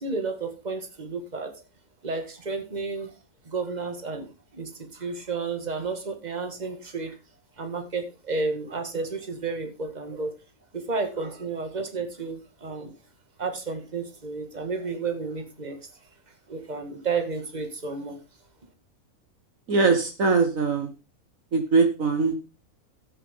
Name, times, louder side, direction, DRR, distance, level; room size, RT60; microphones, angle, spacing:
voice 1, 0.0-1.6 2.0-3.1 3.4-4.3 4.5-7.2 7.6-10.3 10.7-13.0 13.4-15.8 16.5-18.2, right 4 dB, 30° right, 6 dB, 2.0 m, -32 dB
voice 2, 19.7-20.9 21.5-22.4, right 4 dB, 60° right, 7 dB, 1.7 m, -21 dB
13.0 x 8.8 x 3.6 m, 0.29 s
omnidirectional pair, 1.6 m